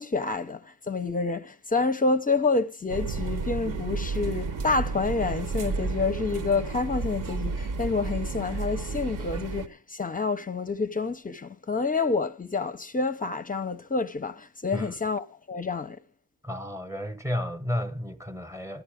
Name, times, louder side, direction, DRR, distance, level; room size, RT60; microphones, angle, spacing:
voice 1, 0.0-16.0, left 4 dB, 25° left, 0.6 m, -28 dB
sound 1, 2.9-9.7, right 4 dB, 60° right, 1.0 m, -32 dB
voice 2, 16.4-18.8, left 1 dB, 10° right, 0.9 m, -32 dB
14.0 x 11.0 x 4.8 m
wide cardioid pair, 165°, 36 cm